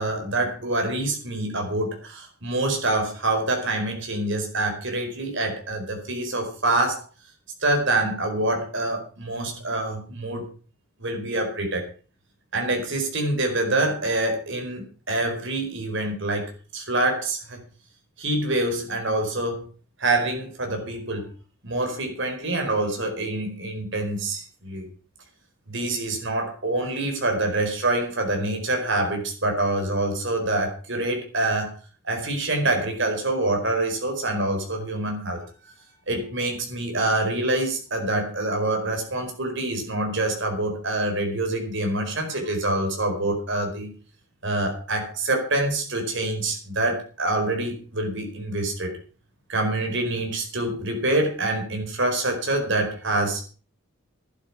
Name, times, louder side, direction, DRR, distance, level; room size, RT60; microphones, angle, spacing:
voice 1, 0.0-7.0 7.6-10.5 11.0-11.8 12.5-17.6 18.2-19.7 20.0-21.3 21.6-24.9 25.7-31.7 32.0-35.4 36.1-43.9 44.4-48.9 49.5-53.4, right 2 dB, 55° right, 3 dB, 4.7 m, -26 dB
12.0 x 11.5 x 6.2 m, 0.39 s
head